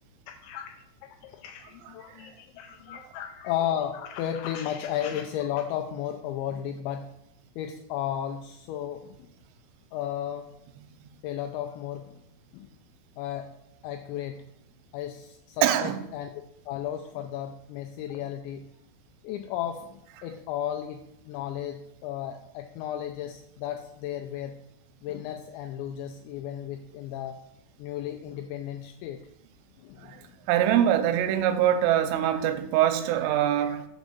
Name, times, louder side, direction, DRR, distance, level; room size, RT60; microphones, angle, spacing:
voice 1, 0.3-7.1 7.6-9.3 9.9-10.5 11.2-12.2 12.5-12.7 13.2-13.5 13.8-14.4 14.9-16.3 16.7-18.7 19.2-24.6 25.0-27.4 27.8-29.2 29.8-30.3, left 10 dB, 85° left, 5 dB, 2.6 m, -34 dB
voice 2, 15.6-16.0 30.0-30.2 30.5-33.9, right 11 dB, 90° right, 9 dB, 3.2 m, -23 dB
6.2 x 5.3 x 6.7 m, 0.82 s
omnidirectional pair, 5.8 m